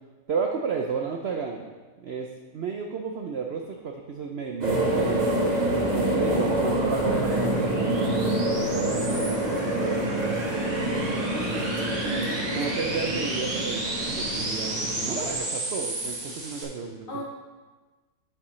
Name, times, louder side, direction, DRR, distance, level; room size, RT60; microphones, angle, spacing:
voice 1, 0.3-1.7 2.0-5.2 5.9-9.7 10.6-10.8 12.4-17.2, right 5 dB, 65° right, 2 dB, 0.6 m, -33 dB
sound 1, 4.6-15.4, right 1 dB, 30° right, 1.0 m, -26 dB
sound 2, 5.3-16.6, right 2 dB, 85° right, 2.0 m, -34 dB
voice 2, 11.3-12.8 17.1-17.2, left 1 dB, 40° left, -1 dB, 0.9 m, -37 dB
8.7 x 6.6 x 3.2 m, 1.3 s
omnidirectional pair, 1.7 m